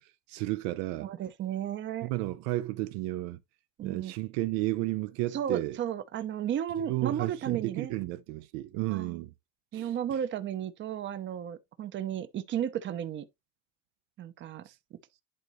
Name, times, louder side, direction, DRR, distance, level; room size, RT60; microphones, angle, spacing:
voice 1, 0.3-1.1 2.0-3.4 3.8-5.8 6.8-9.3 9.7-9.9, right 17 dB, 70° right, 0.6 m, -32 dB
voice 2, 1.0-2.1 3.8-4.1 5.3-8.0 8.9-9.3 9.7-13.3 14.2-14.7, right 10 dB, 35° right, 0.8 m, -34 dB
11.0 x 3.9 x 3.1 m
supercardioid pair, 125°, 33 cm